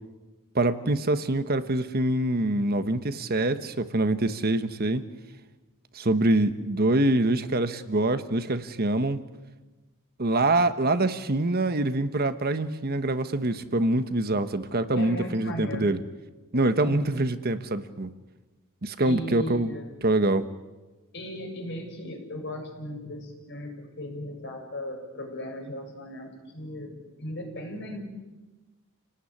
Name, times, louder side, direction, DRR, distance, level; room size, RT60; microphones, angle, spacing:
voice 1, 0.5-5.0 5.9-9.2 10.2-16.0 16.5-18.1 18.8-19.7 20.0-20.4, right 2 dB, 45° right, 10 dB, 1.2 m, -25 dB
voice 2, 14.9-16.0 16.5-17.1 19.0-20.0 21.1-26.9 27.2-28.0, left 1 dB, 50° left, 2 dB, 7.5 m, -37 dB
29.0 x 18.5 x 10.0 m, 1.2 s
head